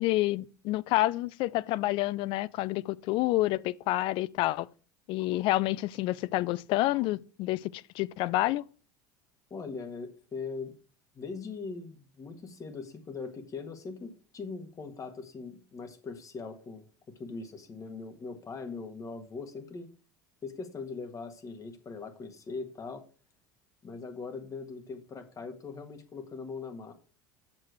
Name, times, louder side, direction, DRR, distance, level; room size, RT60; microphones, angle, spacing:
voice 1, 0.0-4.7 5.1-8.6, left 17 dB, 55° left, 0.4 m, -28 dB
voice 2, 9.5-10.7 11.1-19.9 20.4-23.0 23.8-26.9, left 4 dB, 35° left, 1.7 m, -41 dB
7.4 x 6.5 x 4.6 m
hypercardioid pair, 80°, 10 cm